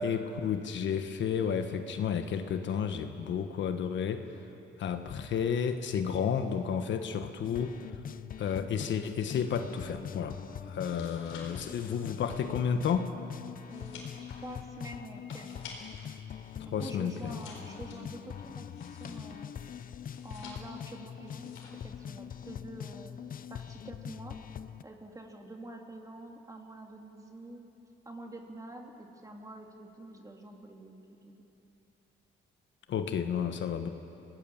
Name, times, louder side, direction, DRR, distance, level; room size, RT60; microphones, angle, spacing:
voice 1, 0.0-4.2 4.8-7.7 8.4-10.4 10.7-13.1 16.6-17.4 32.9-33.9, left 7 dB, 70° left, 7 dB, 1.4 m, -31 dB
sound 1, 7.4-24.8, left 8 dB, 45° left, 0.6 m, -43 dB
sound 2, 10.7-16.1 16.5-19.5 20.0-20.9 21.2-21.9 22.2-22.6, left 4 dB, 85° left, 4.4 m, -52 dB
voice 2, 13.7-14.0 14.4-15.6 16.6-19.5 20.2-21.5 21.8-23.1 23.5-24.4 24.8-27.6 28.0-31.4, right 1 dB, 15° right, 1 dB, 3.2 m, -47 dB
26.5 x 18.5 x 7.3 m, 2.9 s
cardioid pair, 90°, 20 cm